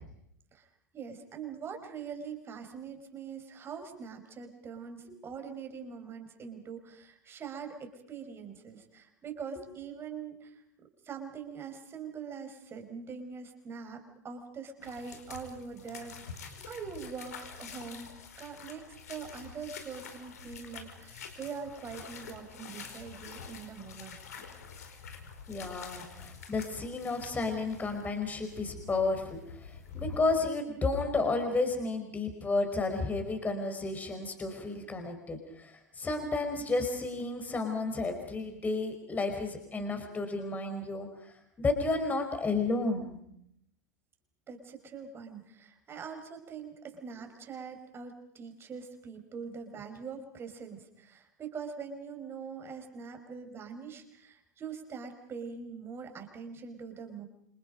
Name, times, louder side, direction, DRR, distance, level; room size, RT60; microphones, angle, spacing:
voice 1, 0.9-10.6 11.0-24.2 44.5-57.2, right 6 dB, 25° right, 6 dB, 5.2 m, -43 dB
sound 1, 14.8-30.2, left 6 dB, 65° left, 4.9 m, -47 dB
voice 2, 25.5-43.2, left 3 dB, 15° left, 6 dB, 4.8 m, -32 dB
28.5 x 26.5 x 5.3 m, 0.73 s
figure-of-eight pair, 85°, 9 cm